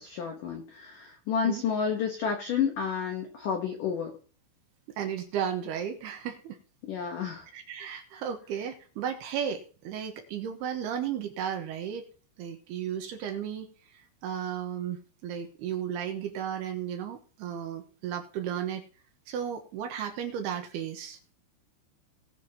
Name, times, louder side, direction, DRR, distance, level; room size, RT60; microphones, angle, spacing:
voice 1, 0.0-4.1 6.8-7.5, left 7 dB, 85° left, 3 dB, 1.8 m, -30 dB
voice 2, 5.0-6.6 7.5-12.1 12.4-13.7 14.2-18.8 19.3-21.2, right 9 dB, 75° right, 5 dB, 2.5 m, -34 dB
19.5 x 7.0 x 2.9 m, 0.40 s
omnidirectional pair, 5.8 m